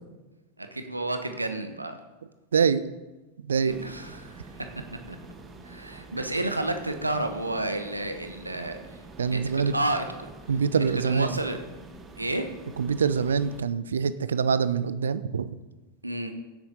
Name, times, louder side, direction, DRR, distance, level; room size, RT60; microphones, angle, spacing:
voice 1, 0.6-2.0 3.6-4.7 5.1-5.2 5.6-8.8 9.3-10.1 11.0-11.6 12.2-12.5 16.0-16.3, right 2 dB, 85° right, 7 dB, 1.1 m, -30 dB
voice 2, 2.5-2.8 3.4-3.8 9.2-9.7 10.5-11.4 12.8-15.5, right 6 dB, 70° right, 15 dB, 0.5 m, -25 dB
sound 1, 3.7-13.6, right 3 dB, 20° right, 1.4 m, -46 dB
15.5 x 8.5 x 4.0 m, 1.1 s
figure-of-eight pair, 90°, 0 cm